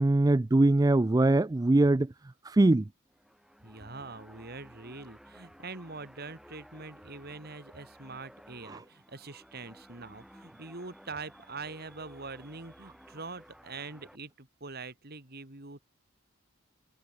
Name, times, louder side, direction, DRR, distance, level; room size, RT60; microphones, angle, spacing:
voice 1, 0.0-2.1 2.4-2.9 8.7-8.8, right 2 dB, 20° right, 0.4 m, -22 dB
sound 1, 3.1-14.2, equal, ahead, 6.0 m, -55 dB
voice 2, 3.6-15.8, right 3 dB, 50° right, 2.6 m, -44 dB
head